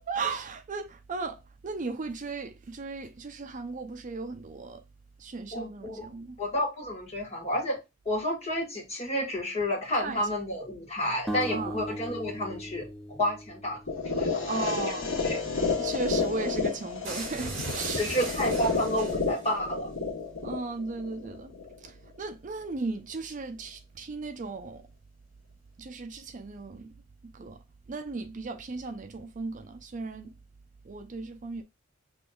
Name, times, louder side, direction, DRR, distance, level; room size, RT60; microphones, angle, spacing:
voice 1, 0.0-4.8 5.2-6.4 9.9-10.2 11.5-11.8 14.5-15.1 15.8-18.1 20.4-21.5 21.8-24.8 25.8-26.9 27.3-27.6 27.9-30.4 30.8-31.6, right 4 dB, 40° right, 0.4 m, -36 dB
voice 2, 5.5-6.1 6.4-7.8 8.0-14.5 14.7-14.8 15.2-15.4 18.0-19.9, equal, 30° left, 1.6 m, -30 dB
sound 1, 11.3-14.4, equal, ahead, 0.7 m, -38 dB
sound 2, 13.9-21.9, left 4 dB, 75° left, 1.5 m, -31 dB
sound 3, 17.0-19.5, right 2 dB, 60° right, 2.5 m, -37 dB
6.2 x 3.0 x 2.3 m
head